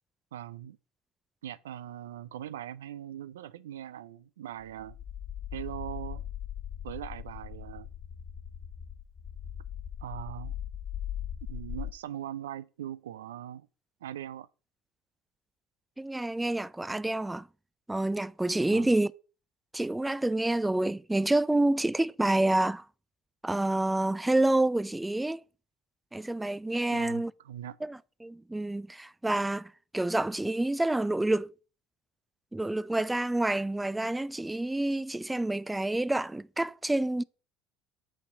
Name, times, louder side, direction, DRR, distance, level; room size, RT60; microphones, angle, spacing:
voice 1, 0.3-0.8 1.4-5.0 5.5-6.2 6.8-7.9 10.0-10.6 11.5-13.7 14.0-14.5 18.7-18.9 26.9-27.8, right 11 dB, 90° right, 0.3 m, -41 dB
sound 1, 4.6-11.9, left 10 dB, 45° left, 1.4 m, -39 dB
voice 2, 16.0-17.4 17.9-19.1 19.7-22.8 23.4-25.4 26.1-27.3 27.8-31.5 32.5-37.2, right 2 dB, 10° right, 0.4 m, -28 dB
8.2 x 4.2 x 5.9 m
hypercardioid pair, 75°, 0 cm